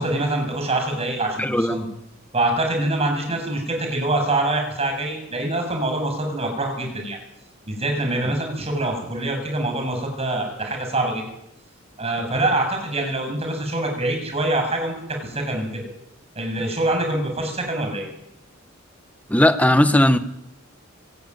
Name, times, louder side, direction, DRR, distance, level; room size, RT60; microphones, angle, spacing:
voice 1, 0.0-1.9 2.3-7.2 7.7-11.2 12.0-15.9 16.4-18.1, right 2 dB, 30° right, 3 dB, 7.3 m, -25 dB
voice 2, 1.4-1.8 8.3-8.4 19.3-20.2, left 1 dB, 5° left, 9 dB, 1.4 m, -17 dB
25.5 x 15.0 x 9.7 m, 0.79 s
head